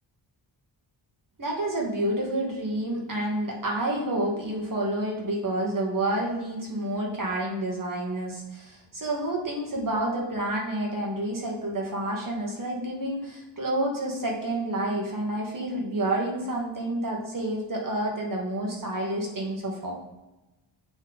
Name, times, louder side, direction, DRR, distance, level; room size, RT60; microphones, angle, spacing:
voice 1, 1.4-19.9, right 1 dB, 45° right, -1 dB, 1.8 m, -29 dB
8.0 x 3.7 x 4.0 m, 1.0 s
wide cardioid pair, 105°, 46 cm